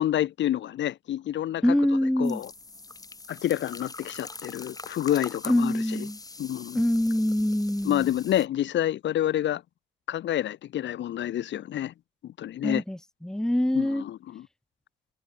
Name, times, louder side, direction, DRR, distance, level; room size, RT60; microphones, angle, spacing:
voice 1, 0.0-1.6 2.2-2.5 3.3-6.0 6.4-6.8 7.8-9.6 10.1-11.9 12.2-12.8 13.7-14.4, left 12 dB, 65° left, 1.0 m, -28 dB
voice 2, 1.6-2.4 5.5-6.2 6.7-8.1 12.6-14.0, left 1 dB, 5° left, 1.0 m, -25 dB
sound 1, 2.2-8.5, left 3 dB, 20° left, 1.3 m, -43 dB
cardioid pair, 90°, 20 cm